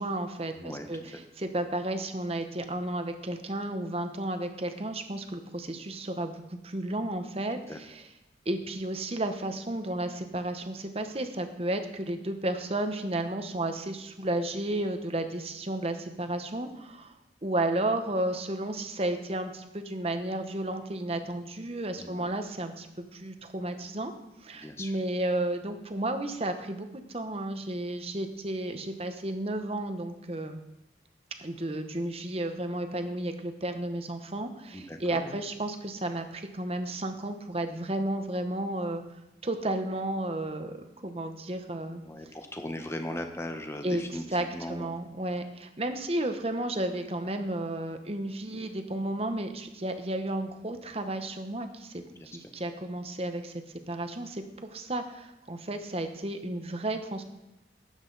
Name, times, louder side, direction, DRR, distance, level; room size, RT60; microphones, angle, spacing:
voice 1, 0.0-8.0 8.5-17.1 17.4-22.9 23.1-24.1 24.4-30.6 31.4-39.0 39.4-42.0 43.8-44.0 44.3-53.5 53.9-54.4 54.7-57.2, right 1 dB, 35° right, 7 dB, 0.9 m, -33 dB
voice 2, 0.6-0.9 7.7-7.8 22.0-22.3 24.5-24.9 34.7-35.4 42.0-44.9 52.1-52.4, left 1 dB, 15° left, 5 dB, 1.0 m, -38 dB
12.5 x 9.7 x 4.0 m, 0.93 s
head